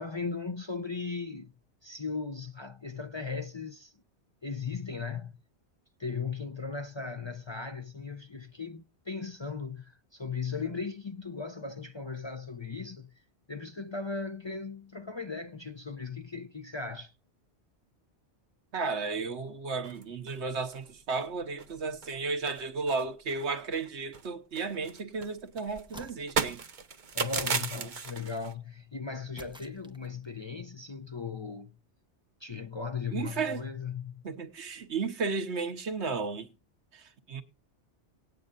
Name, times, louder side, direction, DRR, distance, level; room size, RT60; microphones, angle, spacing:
voice 1, 0.0-1.5 1.8-3.9 4.4-5.4 6.0-13.1 13.5-17.1 27.1-31.8 32.4-34.2, left 5 dB, 30° left, 0.6 m, -37 dB
voice 2, 18.7-26.6 27.5-27.9 33.1-33.6 34.2-36.5 36.9-37.4, right 4 dB, 75° right, 1.4 m, -34 dB
sound 1, 19.8-20.4 20.7-20.8 21.2-21.3 21.6-22.2 22.5-23.9 24.1-28.5, right 5 dB, 45° right, 1.0 m, -35 dB
sound 2, 25.9-26.7 27.4-28.3 29.4-30.3, equal, 5° right, 0.9 m, -50 dB
18.5 x 9.3 x 2.6 m
omnidirectional pair, 1.2 m